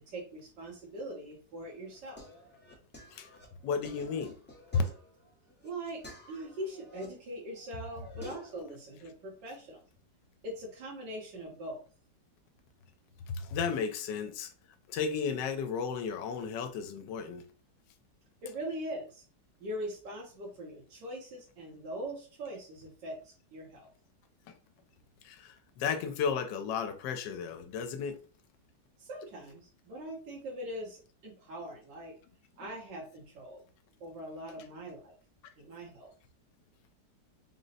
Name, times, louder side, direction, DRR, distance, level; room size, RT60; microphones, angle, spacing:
voice 1, 0.1-2.2 5.6-9.8 10.4-11.8 18.4-19.2 19.6-23.9 29.0-32.1 32.6-33.6 34.0-35.1 35.6-36.1, right 1 dB, 80° right, 1.6 m, -42 dB
sound 1, 1.6-7.1 7.5-8.6, left 2 dB, 15° left, 0.4 m, -51 dB
voice 2, 3.6-4.4 4.7-4.8 13.3-14.5 14.9-17.4 25.2-28.2, left 6 dB, 80° left, 1.2 m, -33 dB
3.8 x 2.0 x 3.9 m
omnidirectional pair, 1.9 m